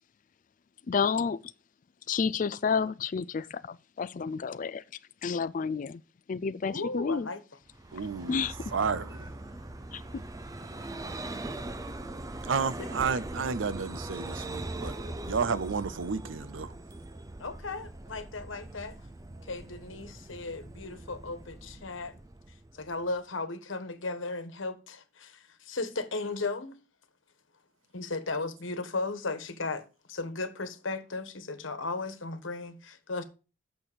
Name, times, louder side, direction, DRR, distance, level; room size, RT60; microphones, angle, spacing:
voice 1, 0.9-1.4 2.1-4.8 5.2-6.0 6.3-7.3 8.3-8.5 9.9-10.0, left 5 dB, 40° left, 0.4 m, -30 dB
voice 2, 6.6-7.4 17.4-18.9 19.5-22.1 22.7-26.7 27.9-29.8 30.1-33.2, left 3 dB, 90° left, 1.3 m, -36 dB
Vehicle, 7.7-23.2, right 2 dB, 20° right, 0.6 m, -41 dB
voice 3, 7.9-9.3 12.4-15.0 15.2-16.7, right 5 dB, 80° right, 0.6 m, -32 dB
8.6 x 6.2 x 5.0 m
head